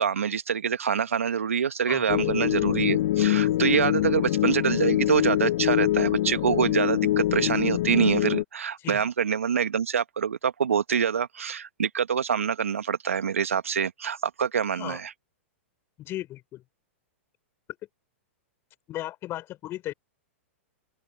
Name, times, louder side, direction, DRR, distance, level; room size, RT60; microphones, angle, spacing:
voice 1, 0.0-15.1, right 7 dB, 85° right, 1.7 m, -25 dB
sound 1, 2.1-8.4, left 14 dB, 65° left, 1.2 m, -24 dB
voice 2, 16.0-16.6 18.9-19.9, left 15 dB, 35° left, 5.8 m, -35 dB
hypercardioid pair, 115°, 7 cm